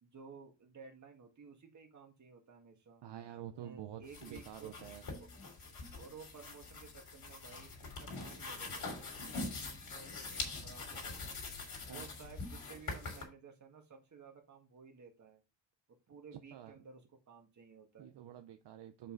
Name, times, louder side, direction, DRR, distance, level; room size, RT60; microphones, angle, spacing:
voice 1, 0.0-3.1 3.5-4.7 6.0-11.4 11.9-15.4 16.1-18.3, right 5 dB, 40° right, 3 dB, 1.9 m, -55 dB
voice 2, 3.0-5.1 11.9-12.1 16.5-16.7 18.0-19.1, right 11 dB, 60° right, 6 dB, 0.8 m, -48 dB
sound 1, 4.0-13.2, left 3 dB, 50° left, 3.3 m, -44 dB
6.7 x 5.5 x 3.9 m, 0.27 s
cardioid pair, 155°, 46 cm